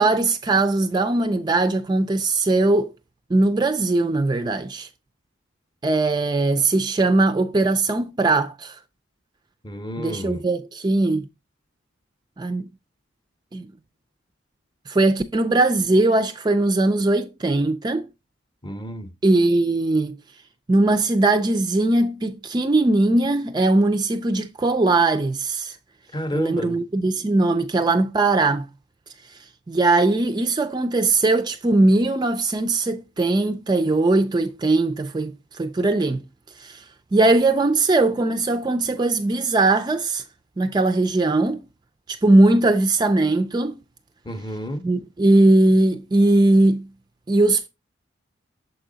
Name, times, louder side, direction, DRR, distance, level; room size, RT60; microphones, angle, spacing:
voice 1, 0.0-2.9 3.3-4.9 5.8-8.8 10.0-11.3 12.4-12.7 13.5-13.7 14.9-18.1 19.2-20.2 20.7-25.8 26.3-28.7 29.3-29.4 29.7-36.2 36.6-36.8 37.1-40.2 40.6-41.6 42.1-43.8 44.8-46.9 47.3-47.7, right 2 dB, 20° right, 0.3 m, -20 dB
voice 2, 9.6-10.4 18.6-19.1 26.1-26.8 44.3-44.8, equal, 20° left, 0.7 m, -30 dB
6.8 x 4.5 x 3.8 m
head